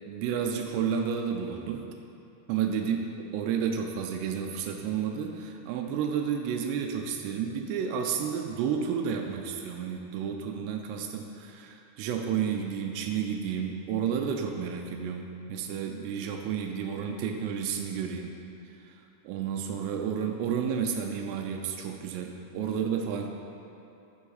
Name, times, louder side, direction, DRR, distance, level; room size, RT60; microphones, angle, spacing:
voice 1, 0.1-1.8 2.5-3.0 3.3-18.3 18.8-18.9 19.2-23.3, right 7 dB, 85° right, 3 dB, 2.7 m, -31 dB
10.0 x 5.2 x 3.9 m, 2.8 s
omnidirectional pair, 4.8 m